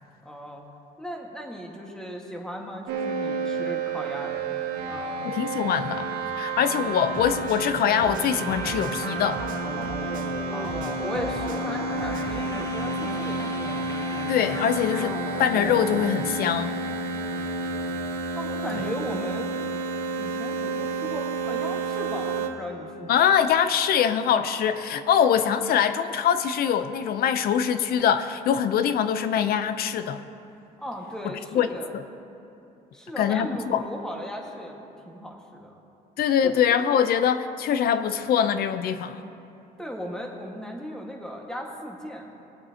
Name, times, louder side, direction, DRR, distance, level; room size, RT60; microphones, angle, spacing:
voice 1, 0.2-0.6 1.0-4.5 4.8-5.3 10.5-13.5 17.3-17.9 18.3-19.8 20.2-23.1 30.8-32.0 32.9-35.7 36.4-36.5 39.8-42.3, equal, 5° left, 0 dB, 1.6 m, -37 dB
sound 1, 2.9-22.5, right 3 dB, 75° right, 1.2 m, -30 dB
voice 2, 5.2-6.1 6.4-9.4 14.3-16.8 23.1-30.2 31.5-31.7 31.9-32.0 33.2-33.8 36.2-39.2, left 8 dB, 65° left, 11 dB, 0.6 m, -23 dB
sound 2, 7.1-10.4 10.6-12.5, right 8 dB, 55° right, 0.5 m, -41 dB
sound 3, 8.3-17.6, left 2 dB, 20° left, 0.8 m, -37 dB
20.0 x 8.3 x 2.9 m, 2.7 s
cardioid pair, 110°, 17 cm